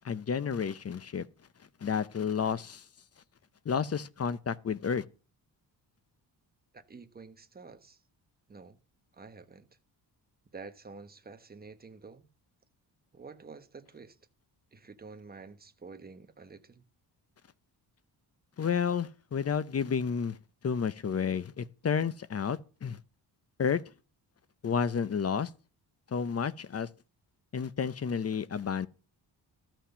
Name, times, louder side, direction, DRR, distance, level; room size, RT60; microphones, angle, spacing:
voice 1, 0.0-1.3 1.8-2.8 3.7-5.0 18.6-20.4 20.6-23.0 23.6-23.8 24.6-25.5 26.1-26.9 27.5-28.9, left 6 dB, 35° left, 0.8 m, -31 dB
voice 2, 6.7-8.0 8.5-8.8 9.1-9.7 10.5-12.3 13.1-14.2 14.7-16.8, right 4 dB, 20° right, 1.2 m, -49 dB
13.5 x 6.0 x 6.9 m
wide cardioid pair, 135°, 41 cm